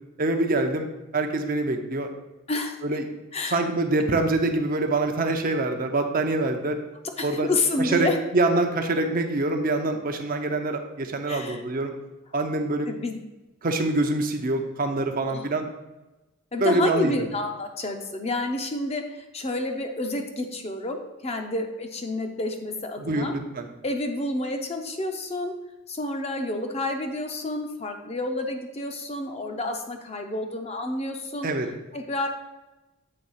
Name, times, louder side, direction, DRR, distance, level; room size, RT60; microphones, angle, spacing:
voice 1, 0.2-0.9 1.1-2.1 2.8-3.0 3.5-6.8 7.2-7.5 7.8-8.1 8.3-11.9 12.3-12.9 13.6-15.7 16.6-17.1 23.0-23.7 31.4-31.7, right 2 dB, 40° right, 5 dB, 0.6 m, -25 dB
voice 2, 3.3-3.7 7.2-8.2 11.3-11.6 12.9-13.2 15.2-15.5 16.5-23.3 23.8-25.5 25.9-32.3, left 2 dB, 30° left, 4 dB, 0.6 m, -29 dB
7.7 x 3.4 x 5.5 m, 1.0 s
head